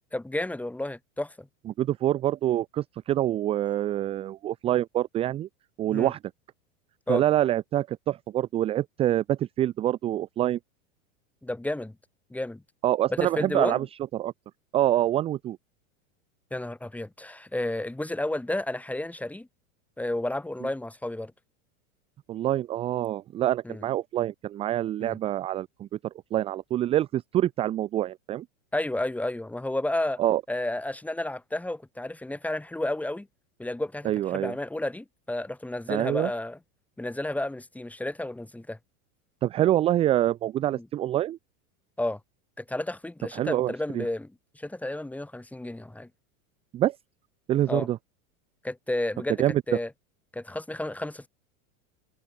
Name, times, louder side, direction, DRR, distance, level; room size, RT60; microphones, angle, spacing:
voice 1, 0.1-1.5 5.9-6.1 7.1-7.2 11.4-11.9 12.3-12.6 13.1-13.9 16.5-19.5 20.0-21.3 23.6-23.8 25.0-25.2 28.7-30.2 30.5-33.3 33.6-36.6 37.0-38.8 40.8-40.9 42.0-42.2 42.6-46.1 47.7-47.9 48.6-49.9 50.3-51.3, left 1 dB, 5° left, 1.3 m, -32 dB
voice 2, 1.7-5.5 5.8-6.2 7.1-10.6 12.8-13.9 14.1-14.3 14.7-15.6 22.3-25.9 26.3-28.5 30.2-30.4 34.0-34.5 35.9-36.3 39.4-41.4 43.3-44.1 46.7-47.0 47.5-48.0 49.4-49.6, right 13 dB, 15° right, 0.3 m, -26 dB
open air
supercardioid pair, 125°, 42 cm